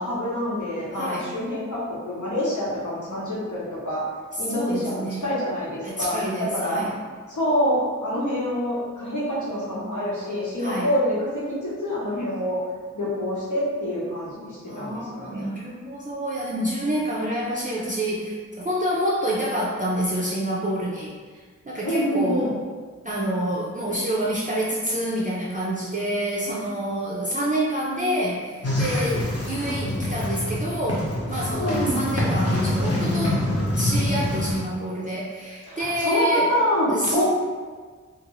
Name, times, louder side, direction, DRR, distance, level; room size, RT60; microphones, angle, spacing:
voice 1, 0.0-4.0 4.4-6.8 7.3-12.6 12.9-15.5 21.8-22.5 31.6-32.0 35.7-37.2, equal, 80° left, -7 dB, 0.9 m, -26 dB
voice 2, 0.9-1.3 4.3-5.3 5.8-7.0 10.6-10.9 14.7-22.6 23.0-33.4 33.8-36.5 36.9-37.2, right 1 dB, 25° right, -6 dB, 0.4 m, -27 dB
sound 1, 28.6-34.6, left 1 dB, 55° left, 0.7 m, -25 dB
2.5 x 2.4 x 3.0 m, 1.5 s
wide cardioid pair, 65°, 29 cm